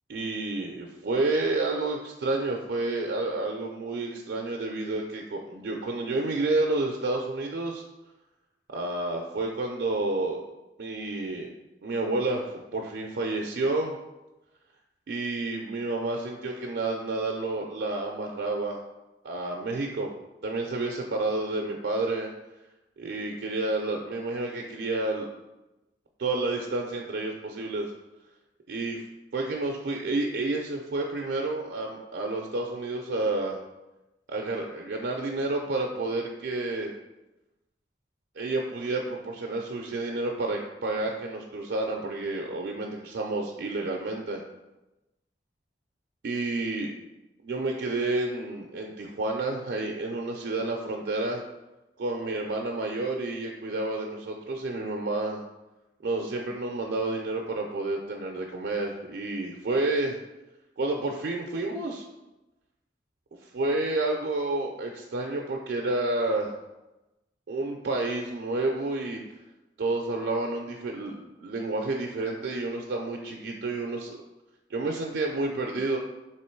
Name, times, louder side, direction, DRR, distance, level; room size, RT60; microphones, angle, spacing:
voice 1, 0.1-7.8 8.7-10.4 10.8-11.5 11.8-14.0 15.1-18.8 19.2-20.1 20.4-22.3 23.0-25.3 26.2-27.9 28.7-29.0 29.3-33.6 34.3-36.9 38.4-44.4 46.2-46.9 47.4-51.4 52.0-55.4 56.0-60.2 60.8-62.1 63.4-66.6 67.5-69.2 69.8-74.2 74.7-76.0, right 2 dB, 80° right, 0 dB, 0.4 m, -30 dB
3.7 x 3.0 x 4.4 m, 1.0 s
head